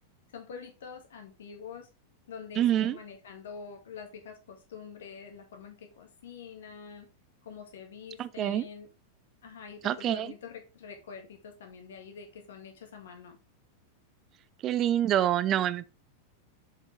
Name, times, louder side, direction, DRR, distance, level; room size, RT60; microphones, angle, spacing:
voice 1, 0.3-1.9 2.3-7.1 7.4-8.9 9.4-13.4, left 6 dB, 60° left, 1.8 m, -45 dB
voice 2, 2.6-3.0 8.2-8.6 9.8-10.3 14.6-15.9, right 11 dB, 30° right, 0.4 m, -26 dB
7.1 x 5.4 x 3.3 m
figure-of-eight pair, 90°, 0 cm